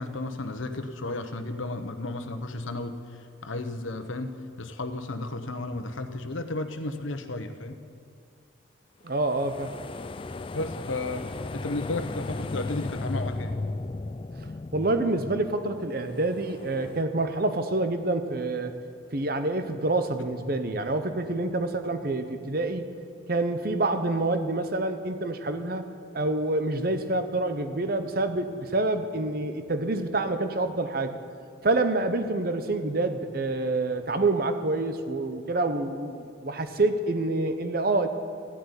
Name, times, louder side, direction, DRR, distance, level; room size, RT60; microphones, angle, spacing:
voice 1, 0.0-7.8 10.5-11.3 11.5-13.6, left 2 dB, 85° left, 8 dB, 1.0 m, -33 dB
voice 2, 9.0-9.7 14.7-18.7 19.1-22.8 23.3-25.9 26.1-31.2 31.6-38.1, right 2 dB, 50° right, 8 dB, 0.8 m, -27 dB
sound 1, 9.1-17.0, left 2 dB, 25° left, 0.3 m, -36 dB
14.0 x 8.0 x 9.8 m, 2.3 s
head